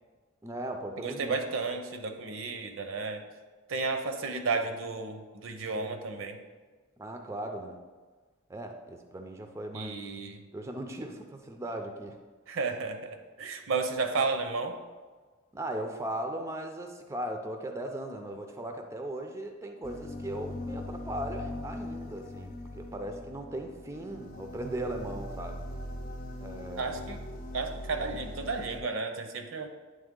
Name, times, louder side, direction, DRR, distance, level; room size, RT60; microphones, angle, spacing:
voice 1, 0.4-1.4 7.0-7.8 8.5-10.0 10.5-12.2 15.5-25.6 26.4-26.9, right 1 dB, 15° right, 4 dB, 0.4 m, -38 dB
voice 2, 1.0-3.2 3.7-6.4 9.7-10.4 12.5-14.8 26.8-27.2 27.5-29.7, right 4 dB, 70° right, 5 dB, 0.6 m, -33 dB
sound 1, 19.8-28.8, left 1 dB, 45° left, 0.6 m, -41 dB
8.9 x 3.2 x 3.7 m, 1.4 s
head